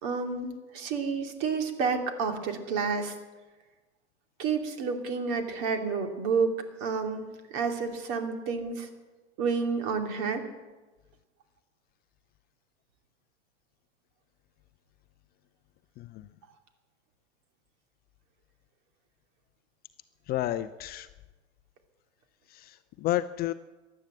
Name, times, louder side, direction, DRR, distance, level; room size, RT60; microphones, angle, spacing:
voice 1, 0.0-3.1 4.4-6.5 6.8-8.9 9.4-10.5, right 5 dB, 50° right, 5 dB, 2.6 m, -30 dB
voice 2, 20.3-21.1 22.5-23.5, left 14 dB, 25° left, 12 dB, 0.5 m, -31 dB
15.5 x 11.0 x 7.6 m, 1.2 s
hypercardioid pair, 105°, 35 cm